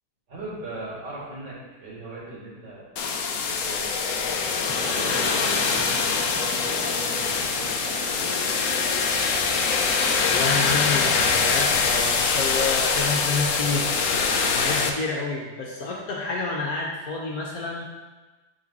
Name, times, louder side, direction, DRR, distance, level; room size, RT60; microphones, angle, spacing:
voice 1, 0.3-2.9 3.3-4.2 4.8-8.5, right 2 dB, 65° right, -7 dB, 2.7 m, -40 dB
sound 1, 3.0-14.9, left 5 dB, 75° left, 0.7 m, -24 dB
sound 2, 4.0-14.6, equal, 20° right, 0.9 m, -40 dB
voice 2, 10.2-17.8, left 3 dB, 60° left, -2 dB, 1.1 m, -29 dB
8.1 x 3.7 x 4.1 m, 1.2 s
omnidirectional pair, 2.0 m